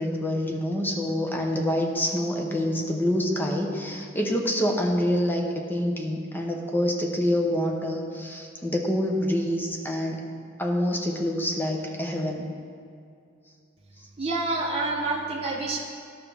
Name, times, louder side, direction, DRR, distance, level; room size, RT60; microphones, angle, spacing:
voice 1, 0.0-10.2 10.6-12.5, left 1 dB, 10° left, 1 dB, 0.8 m, -26 dB
voice 2, 14.2-15.8, right 3 dB, 30° right, -2 dB, 0.7 m, -27 dB
12.0 x 6.0 x 3.4 m, 2.4 s
head